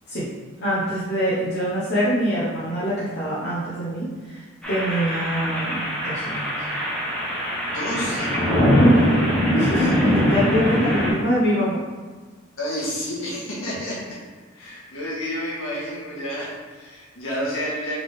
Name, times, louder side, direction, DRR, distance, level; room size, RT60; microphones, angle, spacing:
voice 1, 0.6-6.5 8.7-9.2 9.5-11.8, equal, 55° left, -9 dB, 0.9 m, -24 dB
sound 1, 4.6-11.1, equal, 5° left, 0.9 m, -22 dB
voice 2, 7.6-8.3 10.8-11.1 12.6-14.2 14.5-18.0, equal, 75° left, -6 dB, 1.4 m, -30 dB
3.7 x 3.6 x 3.5 m, 1.4 s
head